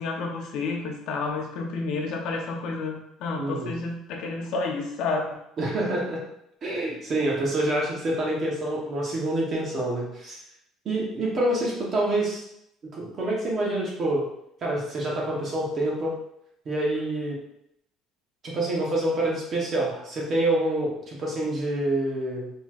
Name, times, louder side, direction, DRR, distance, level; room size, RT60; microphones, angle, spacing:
voice 1, 0.0-5.2, left 3 dB, 55° left, 1 dB, 0.8 m, -30 dB
voice 2, 3.3-3.8 5.6-6.2 6.6-10.4 10.8-12.4 12.9-14.3 14.6-16.2 16.7-17.4 18.4-22.5, right 1 dB, 30° right, -2 dB, 1.0 m, -27 dB
4.4 x 4.1 x 2.4 m, 0.77 s
cardioid pair, 180°, 0 cm